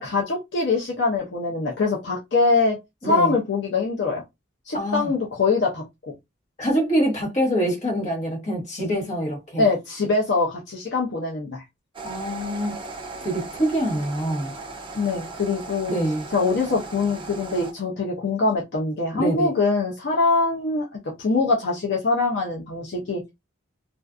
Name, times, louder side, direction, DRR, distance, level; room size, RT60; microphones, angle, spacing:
voice 1, 0.0-2.8 3.0-4.2 4.7-5.8 9.6-11.6 14.9-16.0 16.3-20.9 21.2-23.3, left 3 dB, 55° left, 0.5 m, -23 dB
voice 2, 4.7-5.1 6.6-9.6 12.0-12.8 13.2-14.5 15.9-16.2 19.1-19.5, equal, 35° left, 1.1 m, -25 dB
sound 1, 11.9-17.7, right 3 dB, 25° right, 0.5 m, -37 dB
2.4 x 2.4 x 2.4 m
head